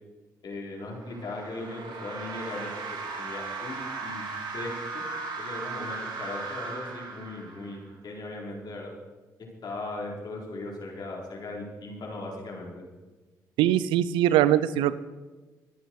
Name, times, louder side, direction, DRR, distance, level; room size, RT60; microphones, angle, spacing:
voice 1, 0.4-2.7 3.2-4.2 4.5-5.0 5.4-7.8 8.0-8.9 9.4-12.8, left 2 dB, 55° left, -1 dB, 4.7 m, -38 dB
sound 1, 0.8-7.9, right 4 dB, 65° right, 3.1 m, -37 dB
voice 2, 13.6-15.0, right 12 dB, 85° right, 16 dB, 0.6 m, -22 dB
23.5 x 8.7 x 4.8 m, 1.2 s
hypercardioid pair, 50°, 8 cm